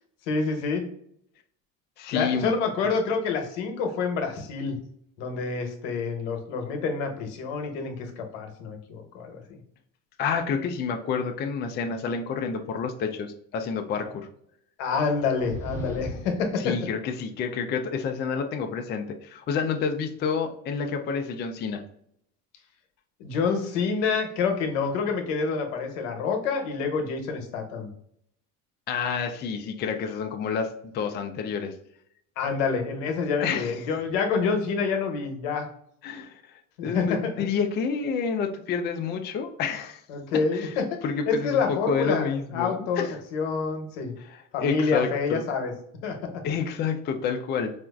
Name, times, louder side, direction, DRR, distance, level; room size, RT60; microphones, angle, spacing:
voice 1, 0.3-0.8 2.1-4.8 5.2-9.4 14.8-16.8 23.2-27.9 32.4-35.7 36.8-37.5 40.1-40.8 41.3-43.1 43.3-44.1 44.5-45.7 46.0-46.2, left 5 dB, 90° left, 4 dB, 0.9 m, -27 dB
voice 2, 2.0-2.5 10.2-14.3 16.6-21.8 28.9-31.7 33.4-33.8 36.0-40.0 40.5-40.7 41.0-43.1 44.2-45.4 46.4-47.7, left 6 dB, 30° left, 5 dB, 0.4 m, -29 dB
sound 1, 15.2-16.5, equal, 10° left, 1.2 m, -36 dB
4.3 x 2.4 x 2.3 m, 0.70 s
supercardioid pair, 120°, 35 cm